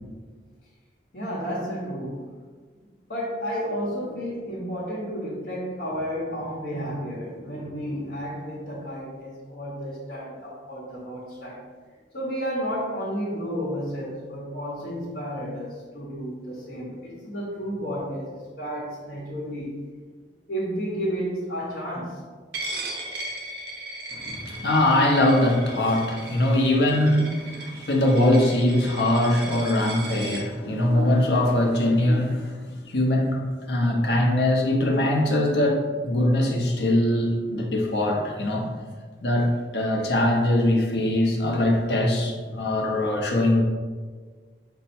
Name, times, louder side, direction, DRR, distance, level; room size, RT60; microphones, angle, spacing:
voice 1, 1.1-2.3 3.1-11.6 12.1-19.8 20.5-22.2 29.8-29.9 30.2-31.2 31.8-32.0 42.5-42.8, equal, 55° left, -10 dB, 1.0 m, -32 dB
Coin (dropping), 22.5-30.4, right 2 dB, 70° right, 0.6 m, -37 dB
voice 2, 24.1-38.7 39.2-43.6, left 1 dB, 75° left, 0 dB, 0.7 m, -22 dB
5.4 x 2.2 x 4.2 m, 1.5 s
head